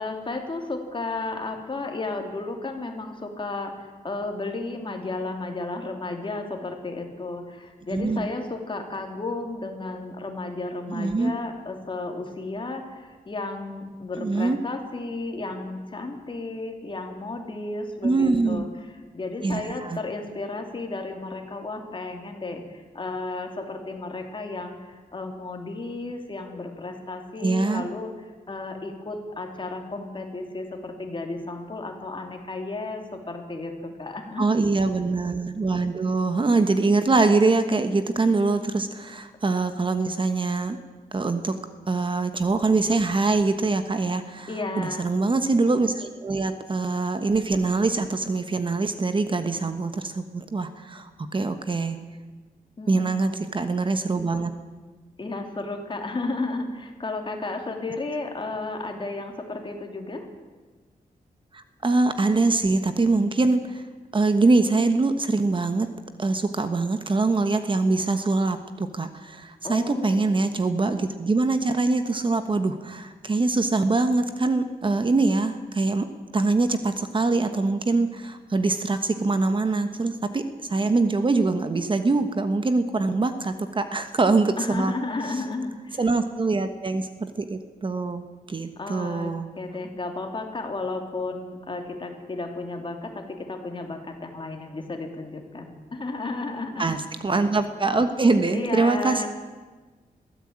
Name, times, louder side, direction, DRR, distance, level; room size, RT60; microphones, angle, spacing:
voice 1, 0.0-28.1 28.5-34.6 44.5-45.1 52.8-53.3 55.2-60.3 69.6-70.3 84.6-86.1 88.8-97.0 98.5-99.3, left 2 dB, 35° left, 3 dB, 3.0 m, -33 dB
voice 2, 7.9-8.3 10.9-11.3 14.2-14.6 18.0-18.7 19.4-20.0 27.4-27.8 34.4-40.8 41.1-41.5 41.9-44.5 44.8-52.0 52.9-54.5 61.5-63.8 64.1-65.9 66.2-76.1 76.3-84.9 86.0-89.5 96.8-99.3, right 3 dB, 35° right, 9 dB, 1.2 m, -23 dB
22.0 x 15.0 x 8.8 m, 1.4 s
wide cardioid pair, 145°, 15 cm